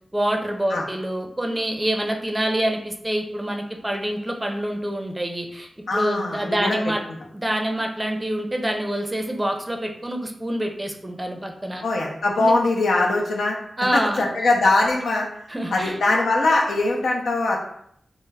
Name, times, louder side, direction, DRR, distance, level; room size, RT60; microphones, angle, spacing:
voice 1, 0.1-7.0 7.3-11.8 12.4-12.5 13.8-14.2 15.5-16.0, right 1 dB, 20° right, 2 dB, 0.5 m, -26 dB
voice 2, 5.9-6.8 11.8-13.6 13.9-15.3 15.7-17.6, left 2 dB, 80° left, -1 dB, 0.5 m, -21 dB
2.2 x 2.1 x 3.3 m, 0.69 s
cardioid pair, 45°, 0 cm